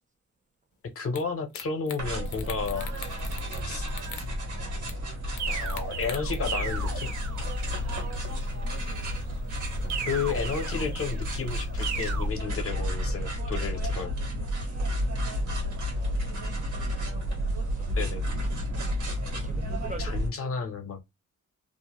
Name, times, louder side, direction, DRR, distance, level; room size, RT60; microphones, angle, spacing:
voice 1, 1.0-2.9 3.6-3.9 5.5-7.1 10.1-14.1 18.0-18.3 20.0-21.0, left 5 dB, 50° left, 0.7 m, -32 dB
sound 1, 1.2-1.3 1.5-2.0 2.3-3.6 3.9-4.3 4.9-5.0 5.4-6.3, left 8 dB, 85° left, 0.6 m, -41 dB
sound 2, 2.0-20.3, equal, 90° right, 1.2 m, -31 dB
sound 3, 5.4-7.8 9.9-11.3 11.8-12.3, right 6 dB, 70° right, 0.7 m, -36 dB
voice 2, 7.5-8.2 9.7-10.2 14.6-15.4 15.7-16.2 16.7-17.2 17.7-18.0 19.2-20.8, right 4 dB, 25° right, 0.5 m, -46 dB
2.5 x 2.1 x 2.9 m
wide cardioid pair, 125°, 29 cm